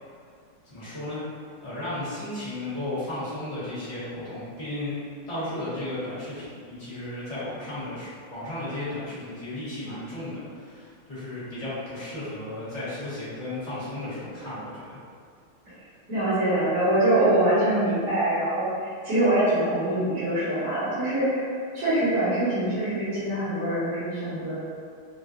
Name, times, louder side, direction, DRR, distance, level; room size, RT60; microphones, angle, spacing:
voice 1, 0.7-1.2 1.6-5.0 5.3-15.0, left 1 dB, 20° left, -13 dB, 1.0 m, -34 dB
voice 2, 16.1-21.5 21.7-24.6, right 1 dB, 45° right, -14 dB, 1.3 m, -24 dB
3.8 x 2.2 x 2.6 m, 2.2 s
omnidirectional pair, 2.4 m